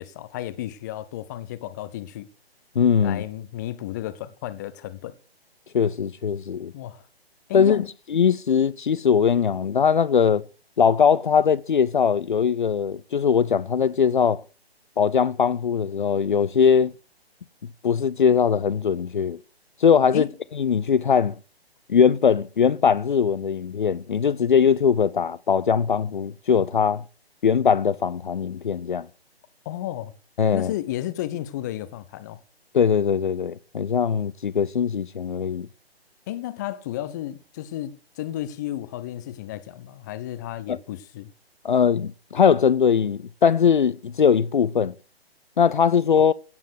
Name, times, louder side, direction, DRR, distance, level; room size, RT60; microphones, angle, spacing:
voice 1, 0.0-2.3 3.0-5.2 6.7-7.0 7.5-7.9 20.1-20.3 29.6-30.1 30.5-32.4 36.3-41.3, left 13 dB, 20° left, 0.7 m, -33 dB
voice 2, 2.8-3.2 5.7-6.7 7.5-10.4 10.8-14.4 15.0-16.9 17.8-19.4 19.8-20.3 20.5-21.3 21.9-27.0 27.4-29.1 30.4-30.7 32.7-35.7 40.7-40.8 41.6-44.9 45.6-46.3, left 7 dB, 50° left, 0.7 m, -20 dB
16.5 x 7.2 x 8.2 m
figure-of-eight pair, 135°, 32 cm